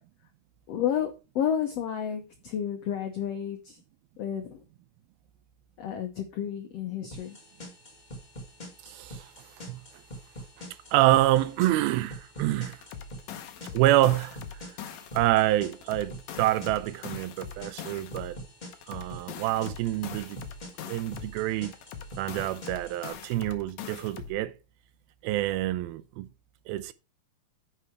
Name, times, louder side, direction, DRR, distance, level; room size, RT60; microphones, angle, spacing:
voice 1, 0.7-3.8 4.2-4.6 5.8-7.4, left 9 dB, 85° left, 1.4 m, -31 dB
sound 1, 7.1-23.1, equal, 20° left, 1.1 m, -46 dB
voice 2, 8.8-9.8 10.9-12.8 13.7-18.4 18.9-20.4 20.9-21.7 22.2-24.5 25.2-26.3 26.7-26.9, right 15 dB, 90° right, 2.5 m, -27 dB
sound 2, 12.7-15.4 15.7-18.4 18.7-21.4 21.7-24.4, left 7 dB, 70° left, 1.7 m, -42 dB
9.6 x 5.7 x 4.5 m
omnidirectional pair, 4.3 m